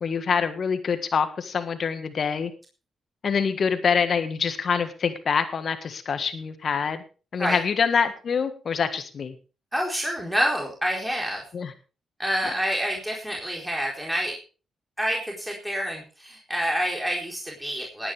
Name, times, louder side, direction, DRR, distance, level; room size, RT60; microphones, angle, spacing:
voice 1, 0.0-2.5 3.2-7.0 7.3-9.3 11.5-11.7, left 6 dB, 60° left, 10 dB, 1.7 m, -25 dB
voice 2, 9.7-11.4 12.2-14.4 15.0-18.1, equal, 5° right, -1 dB, 4.4 m, -27 dB
18.5 x 10.0 x 3.5 m, 0.35 s
supercardioid pair, 45°, 0 cm